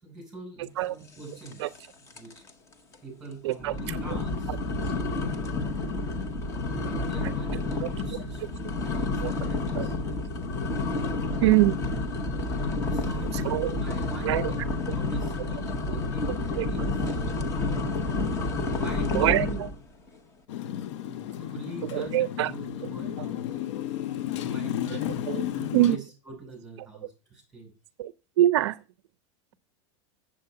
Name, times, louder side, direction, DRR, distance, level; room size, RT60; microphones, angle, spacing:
voice 1, 0.0-1.8 2.1-2.4 3.0-4.5 6.7-8.4 8.7-10.0 12.9-17.1 18.7-19.6 20.7-23.4 24.4-27.7, right 2 dB, 5° right, 5.1 m, -42 dB
voice 2, 0.6-0.9 1.6-1.7 3.4-4.2 7.8-7.9 9.2-9.3 9.7-9.9 11.4-11.8 13.3-13.8 14.2-14.5 16.6-16.7 19.1-19.5 21.8-22.5 22.8-22.9 25.3-25.4 25.7-26.0 28.0-28.1 28.4-28.8, right 15 dB, 60° right, 0.4 m, -24 dB
sound 1, 1.5-1.9 2.1-2.5 2.9-3.0 3.6-19.8, left 3 dB, 20° left, 0.8 m, -29 dB
Motorcycle, 20.5-26.0, left 12 dB, 70° left, 0.6 m, -33 dB
7.7 x 7.5 x 5.7 m
supercardioid pair, 170°, 16 cm